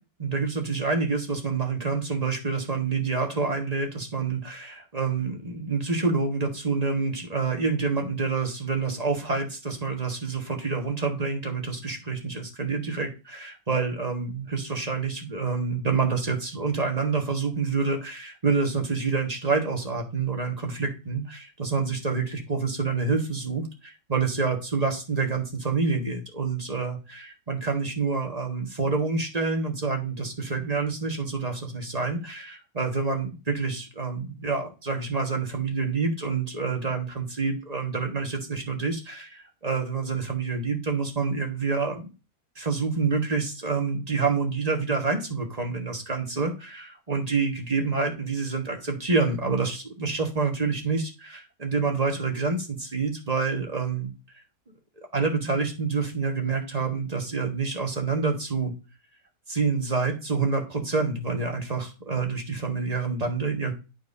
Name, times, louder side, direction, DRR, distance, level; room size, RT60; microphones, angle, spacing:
voice 1, 0.2-42.1 42.5-54.1 55.0-58.7 59.5-63.7, right 4 dB, 25° right, 2 dB, 1.5 m, -27 dB
11.5 x 4.6 x 2.7 m, 0.30 s
omnidirectional pair, 1.6 m